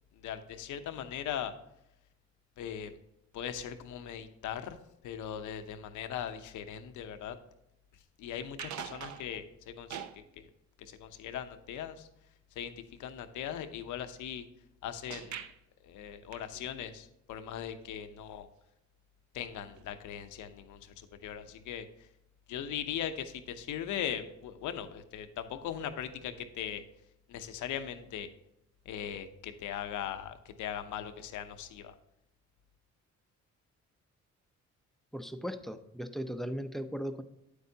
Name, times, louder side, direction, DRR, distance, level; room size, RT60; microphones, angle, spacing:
voice 1, 0.1-1.5 2.6-2.9 3.3-4.8 5.0-7.4 8.2-10.5 10.8-12.1 12.6-14.5 14.8-15.4 15.8-18.5 19.3-22.1 22.5-26.8 27.3-28.3 28.8-31.9, left 9 dB, 80° left, 9 dB, 0.8 m, -39 dB
sound 1, 8.5-9.4 9.9-10.2 15.1-15.6 16.3-16.7 19.8-19.9 20.2-20.3 21.5-21.6, right 9 dB, 70° right, 0.7 m, -43 dB
voice 2, 35.1-37.2, equal, ahead, 10 dB, 0.6 m, -37 dB
9.0 x 8.0 x 2.8 m, 0.84 s
cardioid pair, 90°, 30 cm